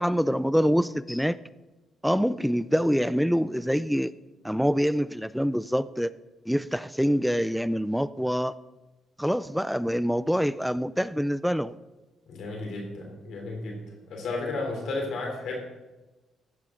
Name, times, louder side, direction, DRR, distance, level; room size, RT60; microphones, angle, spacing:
voice 1, 0.0-1.4 2.0-4.1 4.4-6.1 6.5-8.5 9.2-11.7, equal, ahead, 16 dB, 0.4 m, -25 dB
voice 2, 12.3-13.8 14.1-15.6, left 2 dB, 75° left, 1 dB, 3.4 m, -33 dB
14.5 x 11.0 x 3.8 m, 1.1 s
cardioid pair, 90°, 0 cm